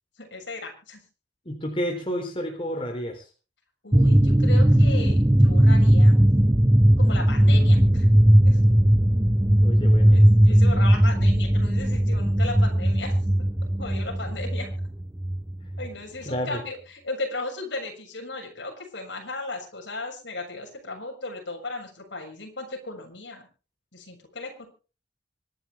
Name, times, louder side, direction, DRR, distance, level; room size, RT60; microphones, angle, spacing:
voice 1, 0.2-1.0 3.8-6.2 7.0-8.1 8.4-8.6 10.1-13.2 13.8-14.7 15.8-23.4 23.9-24.7, left 2 dB, 70° left, 2 dB, 7.0 m, -36 dB
voice 2, 1.5-3.2 9.6-10.2 10.7-10.8 16.3-16.6, equal, 30° left, 1 dB, 3.8 m, -30 dB
sound 1, 3.9-15.9, equal, 15° right, 0.8 m, -18 dB
25.0 x 10.5 x 3.6 m, 0.35 s
head